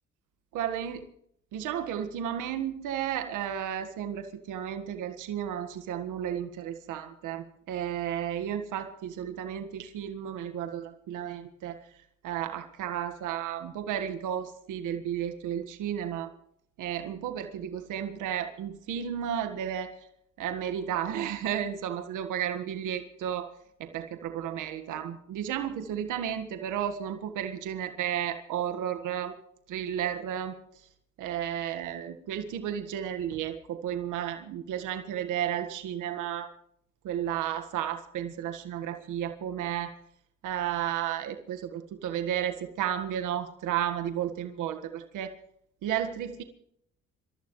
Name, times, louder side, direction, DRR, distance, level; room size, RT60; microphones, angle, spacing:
voice 1, 0.5-1.0 1.5-11.8 12.2-16.3 16.8-19.9 20.4-23.5 23.8-29.3 29.7-30.5 31.2-36.5 37.0-39.9 40.4-45.3 45.8-46.4, right 10 dB, 90° right, 7 dB, 1.7 m, -33 dB
27.0 x 14.5 x 3.2 m, 0.69 s
cardioid pair, 90°, 30 cm